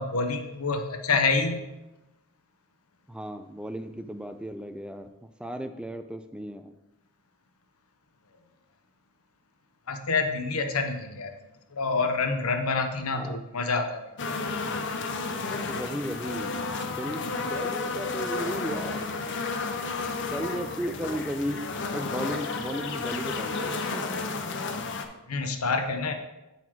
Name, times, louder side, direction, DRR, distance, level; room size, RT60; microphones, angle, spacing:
voice 1, 0.0-1.7 9.9-11.3 11.7-14.0 25.3-26.1, left 4 dB, 85° left, 6 dB, 0.8 m, -27 dB
voice 2, 3.1-6.7 13.1-13.4 15.7-19.0 20.3-21.6 21.9-24.2, equal, 5° right, 8 dB, 0.3 m, -35 dB
sound 1, 14.2-25.0, left 3 dB, 55° left, 0.7 m, -32 dB
8.5 x 4.1 x 4.5 m, 0.98 s
head